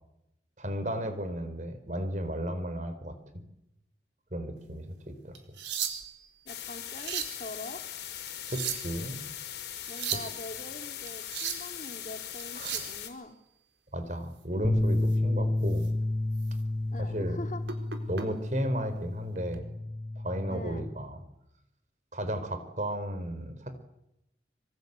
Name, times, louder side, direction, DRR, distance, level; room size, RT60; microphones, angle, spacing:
voice 1, 0.6-3.4 4.3-5.3 8.5-9.3 10.1-10.2 12.5-12.9 13.9-15.9 17.0-17.4 18.1-19.7 20.2-21.2 22.1-23.8, equal, 45° right, 10 dB, 4.6 m, -34 dB
sound 1, 5.4-6.3 6.8-7.4 8.3-9.0 9.8-10.3 11.1-11.7 12.4-12.9 15.0-15.2 15.7-15.9 16.4-16.5 17.7-18.3 19.4-19.6, right 8 dB, 90° right, 4.4 m, -35 dB
voice 2, 6.4-7.8 9.9-13.4 16.9-17.6 20.5-20.8, left 1 dB, 45° left, 6 dB, 3.0 m, -43 dB
sound 2, 6.5-13.1, left 10 dB, 75° left, 5.2 m, -40 dB
sound 3, 14.6-20.9, left 1 dB, ahead, 5.5 m, -30 dB
26.5 x 26.0 x 8.4 m, 0.84 s
head